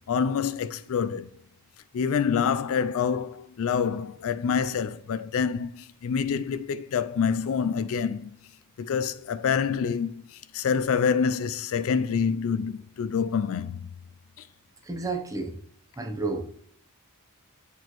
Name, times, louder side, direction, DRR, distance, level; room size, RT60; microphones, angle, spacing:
voice 1, 0.1-1.3 1.9-8.3 8.8-10.2 10.5-13.9, left 6 dB, 65° left, 0.4 m, -26 dB
voice 2, 14.8-15.6 16.0-16.4, right 3 dB, 15° right, 0.7 m, -31 dB
8.0 x 4.6 x 3.0 m
head